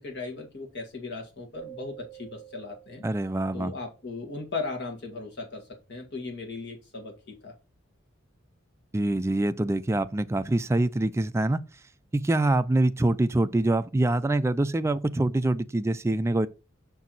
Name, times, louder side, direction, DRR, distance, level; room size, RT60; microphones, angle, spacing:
voice 1, 0.0-3.0 3.5-7.5, left 3 dB, 55° left, 1.9 m, -37 dB
sound 1, 1.5-4.2, right 15 dB, 35° left, 1.5 m, -49 dB
voice 2, 3.0-3.7 8.9-11.6 12.1-16.5, right 2 dB, 15° right, 0.3 m, -25 dB
5.9 x 4.6 x 3.9 m
head